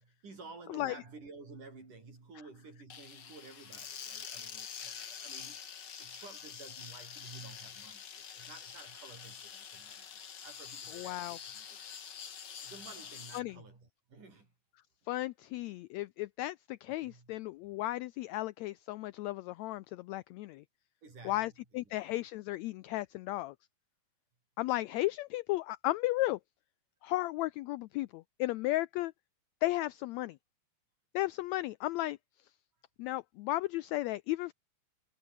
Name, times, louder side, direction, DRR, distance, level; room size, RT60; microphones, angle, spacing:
voice 1, 0.0-10.1 10.4-12.0 12.6-14.5 17.0-17.4 21.0-21.6 21.8-22.0, right 3 dB, 75° right, 8.9 m, -52 dB
sound 1, 2.9-13.4, left 7 dB, 45° left, 1.7 m, -46 dB
voice 2, 10.9-11.4 13.3-13.6 15.1-20.6 21.2-23.5 24.6-26.4 27.0-29.1 29.6-30.4 31.1-32.2 33.0-34.5, left 17 dB, 80° left, 1.6 m, -34 dB
omnidirectional pair, 3.7 m